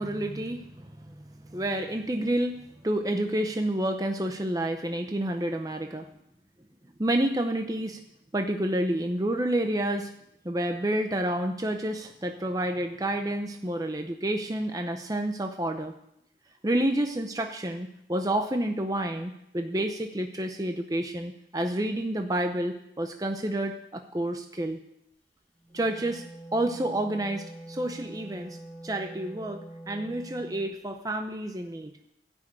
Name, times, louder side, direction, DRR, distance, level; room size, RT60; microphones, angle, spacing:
voice 1, 0.0-2.6 2.8-6.1 7.0-8.0 8.3-10.1 10.4-15.9 16.6-24.8 25.7-26.2 26.5-28.6 28.8-31.9, right 1 dB, 20° right, 5 dB, 0.7 m, -29 dB
Wind instrument woodwind instrument, 25.6-30.7, right 1 dB, 10° left, 1.7 m, -44 dB
14.5 x 6.3 x 8.7 m, 0.80 s
head